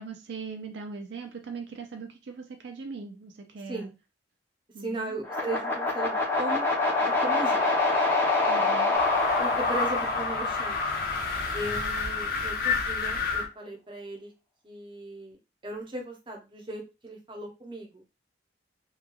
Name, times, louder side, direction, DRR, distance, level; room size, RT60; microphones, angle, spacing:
voice 1, 0.0-3.9 4.7-5.2 8.5-9.0, right 4 dB, 70° right, 4 dB, 0.4 m, -40 dB
voice 2, 4.8-6.7 7.0-7.8 9.4-10.8 11.5-14.3 14.6-15.4 15.6-18.0, right 1 dB, 25° right, 1 dB, 0.6 m, -37 dB
sound 1, 5.2-11.4, left 3 dB, 10° left, 0.6 m, -26 dB
sound 2, 8.9-13.5, left 4 dB, 50° left, 0.5 m, -29 dB
2.9 x 2.3 x 2.2 m, 0.27 s
head